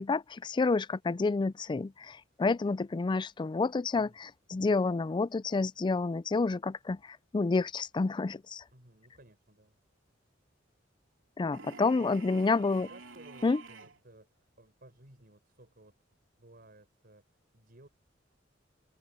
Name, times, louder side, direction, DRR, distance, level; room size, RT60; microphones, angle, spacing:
voice 1, 0.0-8.6 11.4-12.9 13.4-13.6, left 3 dB, 25° left, 0.3 m, -29 dB
voice 2, 8.7-9.8 11.9-12.5 12.9-15.9 16.4-17.9, right 2 dB, 50° right, 5.2 m, -57 dB
sound 1, 11.5-14.0, right 4 dB, 85° right, 2.9 m, -49 dB
head